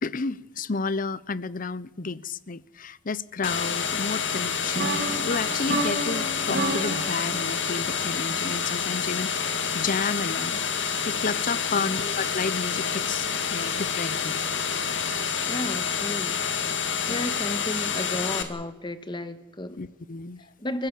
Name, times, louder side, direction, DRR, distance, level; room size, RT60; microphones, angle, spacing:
voice 1, 0.0-10.6 11.1-14.4 17.1-17.3 19.8-20.4, left 4 dB, 45° left, 19 dB, 0.7 m, -31 dB
sound 1, 3.4-18.4, left 6 dB, 85° left, 2.3 m, -28 dB
sound 2, 4.7-8.7, right 2 dB, 60° right, 3.3 m, -31 dB
voice 2, 15.5-16.4 17.0-19.8 20.6-20.9, left 1 dB, 25° left, 10 dB, 1.5 m, -33 dB
30.0 x 15.5 x 7.6 m, 0.98 s
head